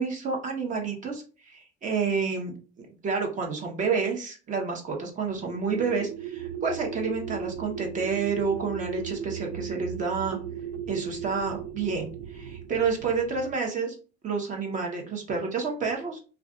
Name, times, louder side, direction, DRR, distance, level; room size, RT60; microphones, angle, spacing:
voice 1, 0.0-10.4 10.9-14.0 14.2-16.2, right 5 dB, 40° right, 2 dB, 0.8 m, -29 dB
sound 1, 5.3-13.6, right 7 dB, 80° right, 0.5 m, -37 dB
2.3 x 2.3 x 3.7 m, 0.35 s
cardioid pair, 140°, 21 cm